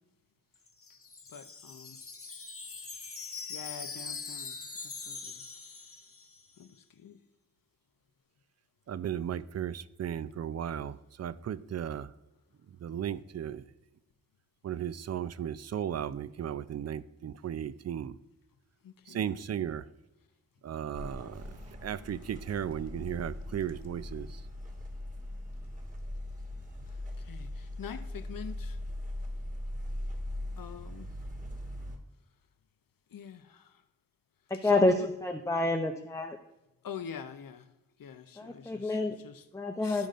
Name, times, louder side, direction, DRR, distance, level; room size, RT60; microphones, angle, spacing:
Wind chime, 0.5-6.5, left 5 dB, 40° left, 1.0 m, -42 dB
voice 1, 1.3-2.0 3.5-5.4 6.6-7.2 18.8-19.3 26.8-28.8 30.6-31.1 33.1-33.8 34.6-35.1 36.8-37.7 38.0-39.4 39.8-40.1, left 7 dB, 70° left, 0.7 m, -45 dB
voice 2, 8.9-12.1 12.8-13.6 14.6-18.1 19.1-19.8 20.6-21.4 21.8-24.3, right 9 dB, 50° right, 0.4 m, -35 dB
sound 1, 20.9-32.0, left 1 dB, 20° right, 1.6 m, -40 dB
voice 3, 34.5-36.4 38.4-39.2 39.5-40.1, left 2 dB, 10° left, 0.6 m, -28 dB
13.0 x 5.2 x 2.5 m
cardioid pair, 45°, 34 cm